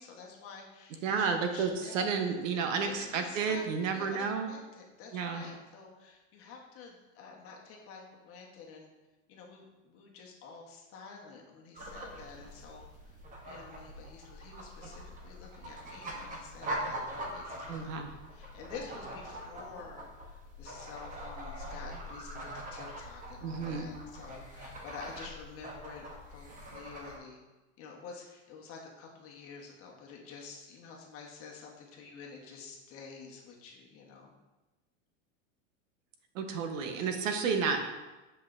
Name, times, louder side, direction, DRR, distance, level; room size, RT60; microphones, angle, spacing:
voice 1, 0.0-2.1 3.0-8.9 9.3-13.2 13.4-18.0 18.3-27.4 27.8-34.3, left 5 dB, 35° left, -1 dB, 1.2 m, -49 dB
voice 2, 1.0-4.5 5.1-5.4 17.7-18.1 23.4-23.9 36.3-37.9, right 5 dB, 75° right, 6 dB, 1.0 m, -31 dB
sound 1, 11.8-27.2, right 1 dB, 20° right, 1.0 m, -43 dB
7.8 x 5.6 x 2.6 m, 1.1 s
supercardioid pair, 140°, 39 cm